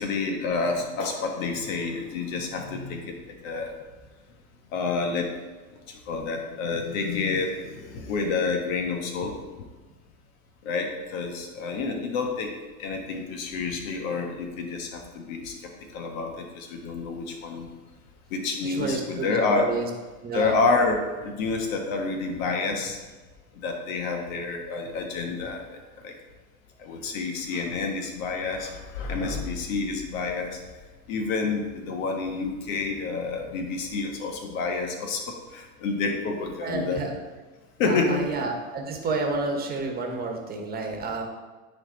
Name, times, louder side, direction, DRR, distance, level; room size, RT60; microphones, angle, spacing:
voice 1, 0.0-3.1 3.4-3.7 4.7-5.3 5.9-9.3 10.6-12.5 12.8-15.5 15.9-17.7 18.3-19.7 20.3-23.0 23.5-26.1 26.8-30.6 31.1-37.0 37.8-38.2, left 4 dB, 65° left, 3 dB, 1.6 m, -28 dB
voice 2, 18.6-19.9 20.2-20.6 36.6-37.2 37.8-41.2, right 3 dB, 20° right, 2 dB, 1.3 m, -30 dB
9.6 x 4.2 x 4.0 m, 1.3 s
supercardioid pair, 125°, 43 cm